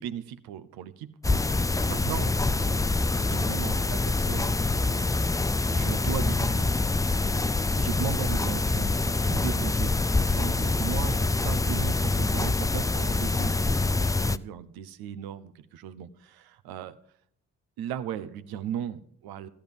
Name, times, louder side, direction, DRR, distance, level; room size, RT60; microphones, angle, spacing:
voice 1, 0.0-2.8 3.1-5.2 5.7-6.7 7.8-17.0 17.8-19.5, right 9 dB, 70° right, 11 dB, 1.0 m, -37 dB
sound 1, 1.2-14.4, left 3 dB, 10° left, 0.4 m, -25 dB
14.0 x 10.0 x 5.4 m, 0.65 s
hypercardioid pair, 40°, 37 cm